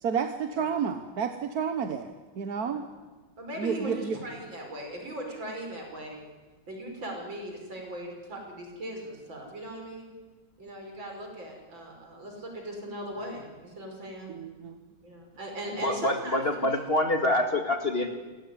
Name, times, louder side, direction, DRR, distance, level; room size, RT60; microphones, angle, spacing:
voice 1, 0.0-2.8 3.6-4.2 14.3-14.8, right 6 dB, 55° right, 8 dB, 1.5 m, -31 dB
voice 2, 3.4-6.2 6.7-10.1 10.6-14.3 15.0-16.8, right 1 dB, 75° right, 2 dB, 6.5 m, -39 dB
voice 3, 15.8-18.1, left 1 dB, 30° left, 5 dB, 2.2 m, -26 dB
28.0 x 17.5 x 9.8 m, 1.3 s
omnidirectional pair, 2.1 m